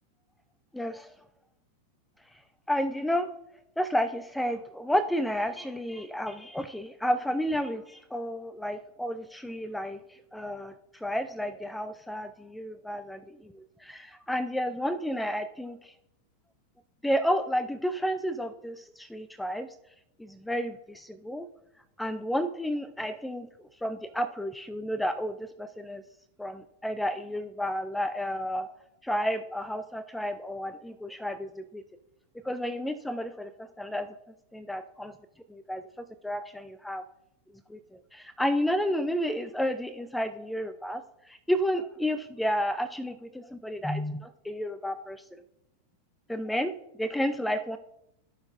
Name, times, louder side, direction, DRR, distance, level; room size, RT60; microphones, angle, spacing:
voice 1, 0.7-1.1 2.7-3.3 3.8-10.0 10.3-10.7 11.0-15.9 17.0-19.7 20.2-21.5 22.0-26.0 26.4-28.7 29.0-31.8 32.4-34.1 34.5-35.1 35.5-35.9 36.2-37.0 37.7-41.0 41.3-45.2 46.3-46.7 47.0-47.8, equal, 5° left, 12 dB, 0.4 m, -31 dB
16.5 x 5.9 x 2.5 m, 0.80 s
figure-of-eight pair, 90°, 0 cm